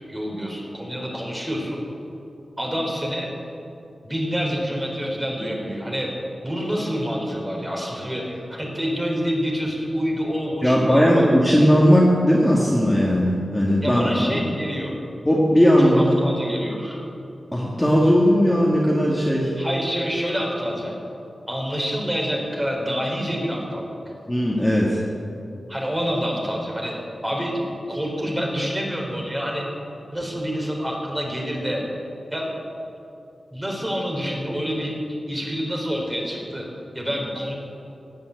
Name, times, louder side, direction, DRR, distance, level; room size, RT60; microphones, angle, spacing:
voice 1, 0.1-1.9 2.6-3.3 4.0-6.1 6.4-11.3 13.8-14.9 15.8-17.0 19.6-20.9 21.5-24.0 25.7-29.7 30.1-31.8 32.3-32.6 33.5-35.0 35.3-36.7 36.9-37.5, equal, 15° right, -1 dB, 4.0 m, -27 dB
voice 2, 10.6-14.5 15.2-16.2 17.5-19.5 24.3-25.0, equal, 5° left, -5 dB, 2.1 m, -18 dB
17.5 x 9.6 x 8.1 m, 2.7 s
wide cardioid pair, 100°, 0 cm